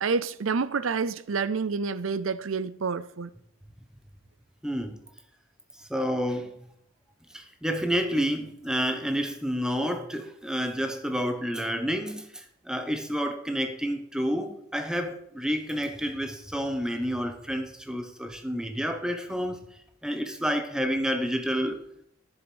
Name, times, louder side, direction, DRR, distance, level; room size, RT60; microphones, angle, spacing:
voice 1, 0.0-3.3, right 5 dB, 85° right, 0.6 m, -28 dB
voice 2, 4.6-5.0 5.9-6.5 7.3-12.3 12.6-19.6 20.0-21.8, equal, 5° right, 1.0 m, -29 dB
11.0 x 7.3 x 6.2 m
head